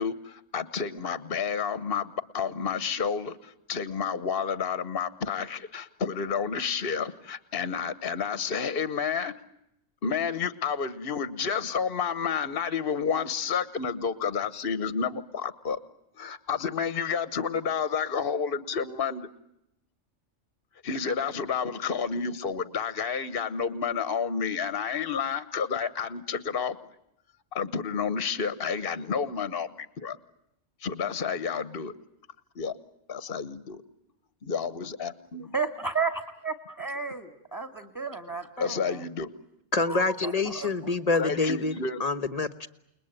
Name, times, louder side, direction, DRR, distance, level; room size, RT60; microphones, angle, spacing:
voice 1, 0.0-9.3 10.0-15.8 16.2-19.3 20.8-26.8 27.5-30.2 30.8-31.9 32.5-32.8 33.1-33.8 34.4-35.5 38.6-39.3 41.2-42.0, left 6 dB, 50° left, 14 dB, 1.4 m, -30 dB
voice 2, 35.5-39.0 39.8-40.9, right 4 dB, 15° left, 8 dB, 1.9 m, -33 dB
voice 3, 39.7-41.7 42.0-42.7, left 3 dB, 30° left, 12 dB, 1.3 m, -26 dB
29.5 x 21.0 x 9.1 m, 0.84 s
omnidirectional pair, 1.3 m